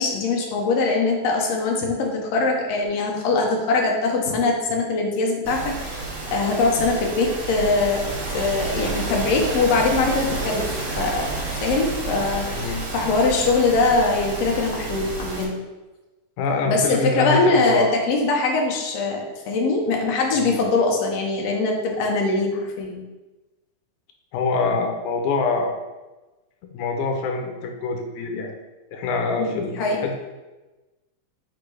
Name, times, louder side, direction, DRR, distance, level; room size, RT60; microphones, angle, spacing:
voice 1, 0.0-8.0 8.3-15.5 16.6-19.2 19.5-23.0 29.4-30.0, left 3 dB, 70° left, 0 dB, 1.9 m, -22 dB
sound 1, 5.4-15.4, right 3 dB, 55° right, 2.0 m, -30 dB
voice 2, 12.5-12.9 16.4-18.0 20.4-20.6 24.3-25.8 26.7-28.6 28.9-30.1, left 4 dB, 90° left, 3 dB, 2.2 m, -25 dB
5.0 x 4.3 x 4.7 m, 1.1 s
omnidirectional pair, 3.3 m